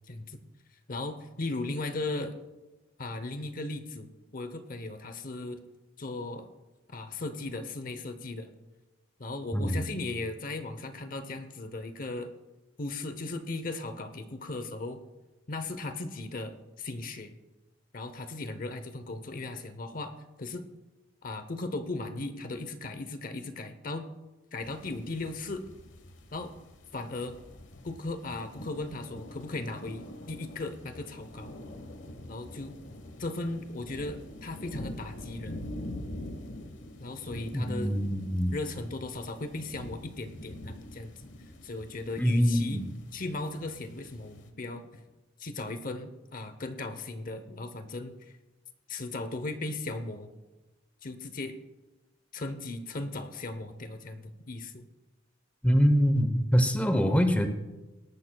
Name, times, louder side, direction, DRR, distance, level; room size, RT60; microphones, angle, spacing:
voice 1, 0.1-0.4 0.9-2.4 3.0-5.6 6.0-6.5 6.9-8.5 9.2-12.3 12.8-15.0 15.5-17.3 17.9-20.7 21.2-24.1 24.5-25.6 26.3-26.6 26.9-27.3 27.8-31.5 32.3-32.7 33.2-35.6 37.0-37.9 38.5-41.3 41.6-42.8 43.1-45.0 45.4-48.2 48.9-50.3 51.0-51.6 52.3-54.9, left 2 dB, 45° left, 9 dB, 0.8 m, -37 dB
sound 1, 24.6-44.5, left 1 dB, 75° left, 1.3 m, -45 dB
voice 2, 37.5-38.5 42.2-42.9 55.6-57.5, equal, 5° left, 7 dB, 0.8 m, -24 dB
19.0 x 13.0 x 2.3 m, 1.1 s
head